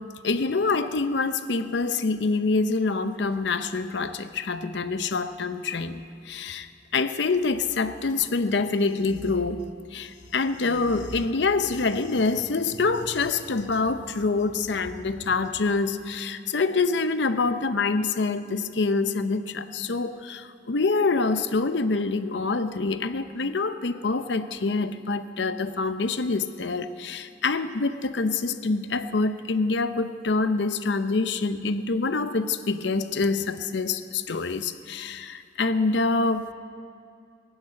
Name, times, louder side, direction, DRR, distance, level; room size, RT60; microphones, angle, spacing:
voice 1, 0.2-6.0 6.3-36.5, left 3 dB, 75° left, 10 dB, 0.7 m, -26 dB
18.0 x 8.1 x 8.9 m, 2.4 s
head